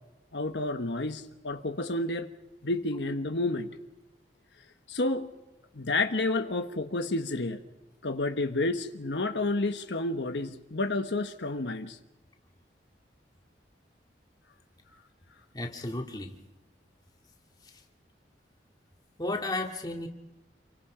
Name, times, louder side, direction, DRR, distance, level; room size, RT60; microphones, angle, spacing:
voice 1, 0.3-2.3 2.6-3.7 4.9-5.3 5.7-7.6 8.0-12.0, left 2 dB, 80° left, 6 dB, 1.3 m, -30 dB
voice 2, 15.5-16.4 17.6-17.8 19.2-20.1, left 2 dB, 25° left, 2 dB, 2.3 m, -33 dB
28.0 x 23.5 x 5.0 m, 1.1 s
head